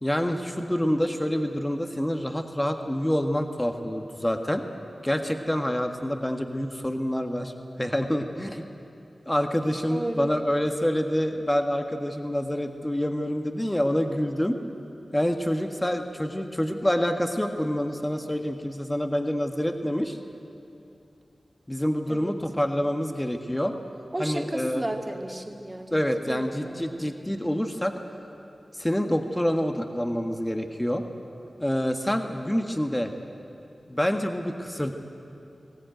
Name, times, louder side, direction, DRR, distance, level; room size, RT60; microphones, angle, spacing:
voice 1, 0.0-4.6 5.0-7.5 7.8-8.6 9.2-14.6 15.1-20.2 21.7-23.7 24.2-24.8 25.9-27.9 28.7-31.0 31.6-33.1 33.9-34.9, equal, 15° left, 5 dB, 1.6 m, -27 dB
voice 2, 9.9-10.3 22.1-22.4 24.1-26.0 26.3-27.0, right 1 dB, 25° right, 3 dB, 2.2 m, -33 dB
20.5 x 18.0 x 9.1 m, 2.7 s
cardioid pair, 45°, 0 cm